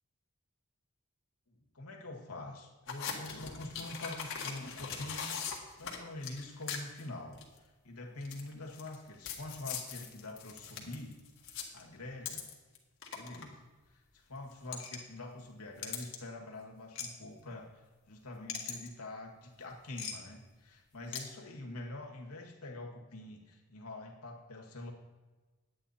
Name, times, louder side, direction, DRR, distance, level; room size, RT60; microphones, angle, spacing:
voice 1, 1.5-5.3 5.8-11.2 11.7-12.5 13.1-17.8 18.1-24.9, left 2 dB, 85° left, 1 dB, 1.8 m, -45 dB
sound 1, 2.9-7.0 7.3-7.6 8.2-9.0 9.2-12.8 13.0-13.4 14.5-15.0 15.8-16.2 17.0-17.1 18.5-18.9 20.0-20.1 21.1-21.2, left 7 dB, 60° left, 1.6 m, -40 dB
10.5 x 8.9 x 4.2 m, 1.2 s
head